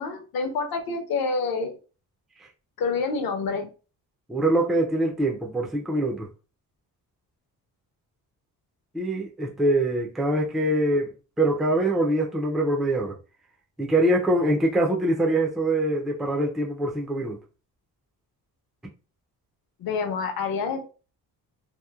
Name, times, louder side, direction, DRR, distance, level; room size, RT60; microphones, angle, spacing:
voice 1, 0.0-1.7 2.8-3.7 19.8-20.8, left 4 dB, 65° left, 0.7 m, -27 dB
voice 2, 4.3-6.3 8.9-13.2 13.8-17.4, right 1 dB, ahead, 0.3 m, -24 dB
2.9 x 2.0 x 2.3 m
cardioid pair, 135°, 39 cm